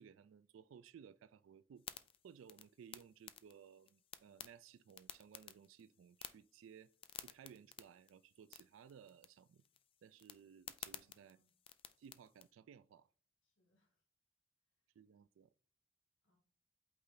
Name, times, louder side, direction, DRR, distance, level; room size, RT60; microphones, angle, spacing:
voice 1, 0.0-1.9 2.2-6.9 7.2-9.6 10.0-11.4 12.0-13.1 15.0-15.5, right 7 dB, 80° right, 0.3 m, -60 dB
sound 1, 1.8-12.5, left 9 dB, 30° left, 0.4 m, -56 dB
voice 2, 10.9-11.5 13.4-14.1 14.7-15.0 16.2-16.4, equal, 75° left, 1.8 m, -81 dB
8.2 x 3.2 x 3.9 m
head